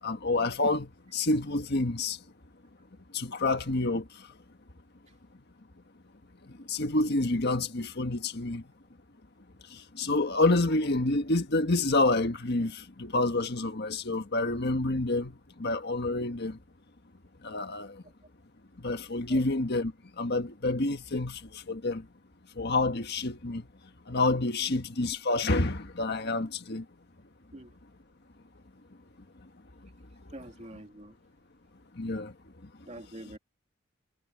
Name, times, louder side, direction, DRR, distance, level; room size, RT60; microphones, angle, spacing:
voice 1, 0.0-2.2 3.1-4.3 6.4-8.7 9.7-16.6 17.4-18.0 18.8-22.1 22.5-23.7 24.1-26.8 29.4-29.5 31.9-32.3 32.6-32.9, left 2 dB, 55° left, 1.5 m, -28 dB
voice 2, 30.3-31.2 32.9-33.4, right 1 dB, 35° right, 2.8 m, -45 dB
head